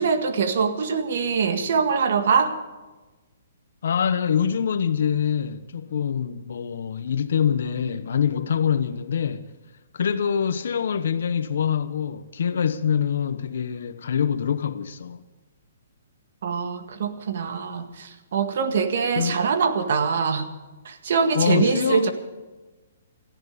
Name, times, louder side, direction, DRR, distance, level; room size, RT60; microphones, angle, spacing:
voice 1, 0.0-2.5 16.4-20.5 20.9-22.1, right 5 dB, 55° right, 1.9 m, -23 dB
voice 2, 3.8-9.5 9.9-15.2 19.2-19.4 21.3-22.1, left 7 dB, 65° left, 0.9 m, -25 dB
18.0 x 15.0 x 5.1 m
hypercardioid pair, 170°, 0 cm